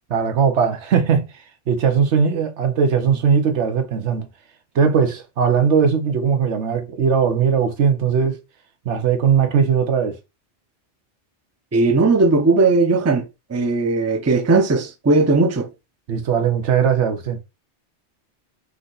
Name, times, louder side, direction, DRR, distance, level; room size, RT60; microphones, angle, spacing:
voice 1, 0.1-1.3 1.7-4.3 4.7-8.3 8.9-10.2 16.1-17.5, right 6 dB, 85° right, 1.1 m, -19 dB
voice 2, 11.7-13.2 13.5-15.7, right 3 dB, 20° right, 0.4 m, -17 dB
4.8 x 2.7 x 3.9 m
omnidirectional pair, 1.1 m